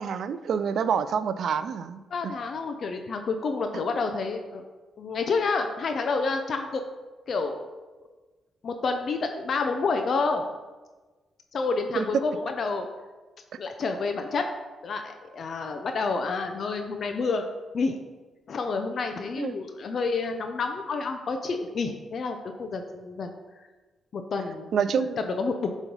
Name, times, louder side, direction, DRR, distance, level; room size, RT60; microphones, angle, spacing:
voice 1, 0.0-2.3 12.0-12.1 19.4-19.6 24.7-25.2, right 7 dB, 70° right, 13 dB, 0.3 m, -27 dB
voice 2, 2.1-4.6 5.0-6.8 7.3-7.6 8.6-10.5 11.5-12.9 13.6-14.5 14.8-17.4 17.7-18.0 18.5-23.3 24.1-24.7 25.2-25.7, left 4 dB, 55° left, 5 dB, 0.5 m, -29 dB
7.6 x 3.1 x 5.3 m, 1.3 s
cardioid pair, 80°, 0 cm